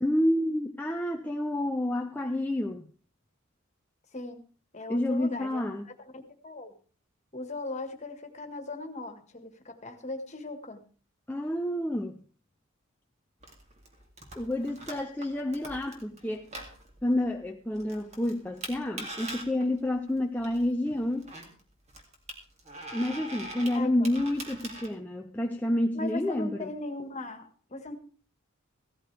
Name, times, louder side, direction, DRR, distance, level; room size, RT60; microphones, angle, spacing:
voice 1, 0.0-2.9 4.9-5.9 11.3-12.2 14.4-16.5 17.0-21.3 22.9-26.7, left 1 dB, 10° left, 0.6 m, -29 dB
voice 2, 4.1-4.4 4.7-5.9 6.4-6.7 7.3-10.8 23.7-24.1 25.9-27.9, left 2 dB, 35° left, 1.7 m, -38 dB
sound 1, 13.4-24.9, right 1 dB, 30° right, 2.4 m, -43 dB
16.5 x 13.5 x 3.4 m
head